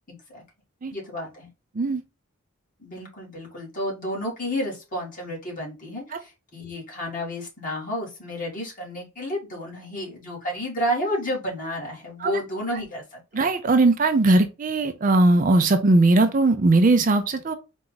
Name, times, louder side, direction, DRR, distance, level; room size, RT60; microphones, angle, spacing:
voice 1, 0.1-0.4 0.9-1.5 2.8-13.4, equal, 40° left, 2.0 m, -31 dB
voice 2, 13.3-17.5, right 2 dB, 40° right, 0.4 m, -19 dB
4.4 x 2.5 x 3.8 m
head